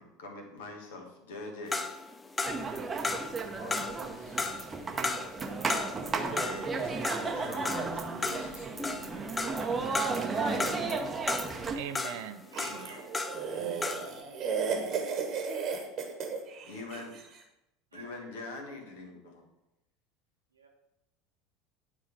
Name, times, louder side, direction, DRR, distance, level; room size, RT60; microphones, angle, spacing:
voice 1, 0.0-1.8 3.5-4.6 4.9-9.7 10.3-11.1 16.6-17.2 17.9-19.5, left 2 dB, 65° left, 3 dB, 1.3 m, -45 dB
sound 1, 1.7-13.5 13.8-14.2, left 3 dB, 15° left, 0.5 m, -35 dB
sound 2, 2.4-11.8, right 4 dB, 20° right, 0.8 m, -34 dB
voice 2, 11.7-13.0 13.6-13.8, right 10 dB, 60° right, 10 dB, 0.4 m, -42 dB
voice 3, 12.4-13.1 13.4-13.7 14.3-14.6 16.1-16.5 17.9-18.2 20.5-20.7, right 4 dB, 80° right, 0 dB, 1.1 m, -52 dB
sound 3, 12.5-17.2, right 6 dB, 40° right, 1.2 m, -34 dB
9.6 x 3.7 x 4.8 m, 0.90 s
figure-of-eight pair, 70°, 0 cm